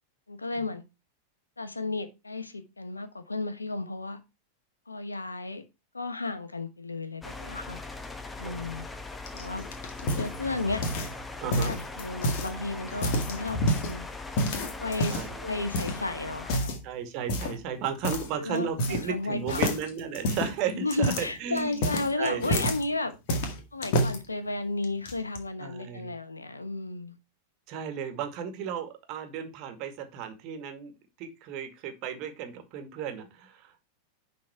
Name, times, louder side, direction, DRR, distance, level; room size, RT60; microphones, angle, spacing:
voice 1, 0.3-0.8 1.6-4.2 4.9-5.6 5.9-7.8 8.4-8.9 9.3-9.6 10.1-10.8 11.4-14.1 14.8-16.7 18.3-19.6 20.7-23.2 23.7-27.2, left 3 dB, 80° left, 1.1 m, -33 dB
sound 1, 7.2-16.6, left 3 dB, 10° left, 1.0 m, -40 dB
voice 2, 8.4-8.7 11.4-11.8 15.1-15.4 16.8-22.6 25.6-26.1 27.7-30.9 31.2-33.8, right 7 dB, 40° right, 1.9 m, -35 dB
sound 2, 9.3-11.2 11.5-12.5 12.9-13.9 14.4-15.3 15.7-16.0 16.4-16.8 17.3-17.6 18.0-18.3 18.5-19.2 19.5-22.8 23.3-24.2 24.8-25.4, equal, 45° left, 2.0 m, -29 dB
10.5 x 4.2 x 4.5 m
figure-of-eight pair, 90°, 0 cm